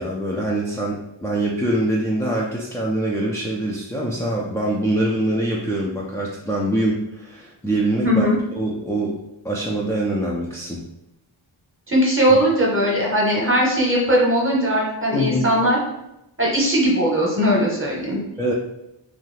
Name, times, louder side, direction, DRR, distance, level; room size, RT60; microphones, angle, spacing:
voice 1, 0.0-8.3 8.5-9.1 9.4-10.8 12.3-12.4 15.1-15.4 18.4-18.5, right 1 dB, 5° left, -4 dB, 0.3 m, -24 dB
voice 2, 8.0-8.4 11.9-15.8 16.4-18.2, equal, 25° right, -3 dB, 0.9 m, -19 dB
2.6 x 2.4 x 3.1 m, 0.89 s
wide cardioid pair, 90°, 49 cm